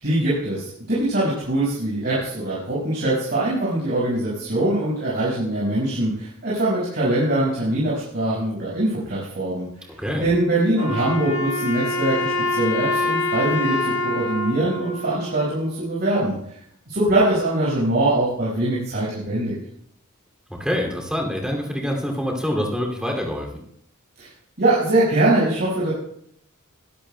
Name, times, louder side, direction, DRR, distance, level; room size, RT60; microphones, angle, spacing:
voice 1, 0.0-9.7 10.2-16.4 16.9-19.5 24.2-24.3 24.6-25.9, right 1 dB, 50° right, -8 dB, 5.3 m, -22 dB
voice 2, 10.0-10.3 20.5-23.6, equal, 5° right, 0 dB, 2.6 m, -26 dB
Wind instrument woodwind instrument, 10.7-15.9, left 2 dB, 90° left, 3.2 m, -26 dB
22.0 x 12.5 x 2.2 m, 0.70 s
head